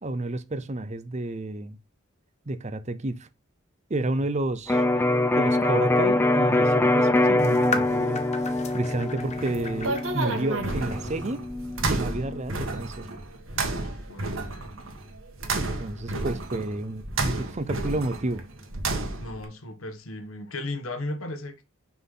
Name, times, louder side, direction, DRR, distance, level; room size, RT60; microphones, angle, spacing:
voice 1, 0.0-1.8 2.5-3.3 3.9-4.8 5.3-8.2 8.7-11.5 11.8-13.1 15.5-18.4, right 2 dB, 35° right, 0.6 m, -30 dB
Electric guitar, 4.7-12.5, left 2 dB, 10° left, 0.6 m, -24 dB
sound 1, 7.4-11.4, left 4 dB, 35° left, 1.1 m, -37 dB
sound 2, 9.2-19.4, right 2 dB, 70° right, 1.6 m, -31 dB
voice 2, 13.5-14.7 15.9-16.2 19.2-21.6, left 2 dB, 85° left, 1.4 m, -37 dB
6.0 x 5.6 x 3.8 m
head